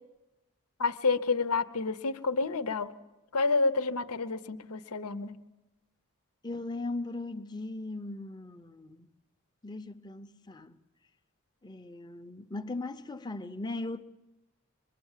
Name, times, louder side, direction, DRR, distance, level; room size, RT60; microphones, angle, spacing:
voice 1, 0.8-2.9 3.3-5.4, left 4 dB, 90° left, 0.9 m, -29 dB
voice 2, 6.4-9.1 9.6-10.8 11.6-14.0, left 2 dB, 20° left, 0.7 m, -38 dB
24.5 x 22.5 x 7.4 m
head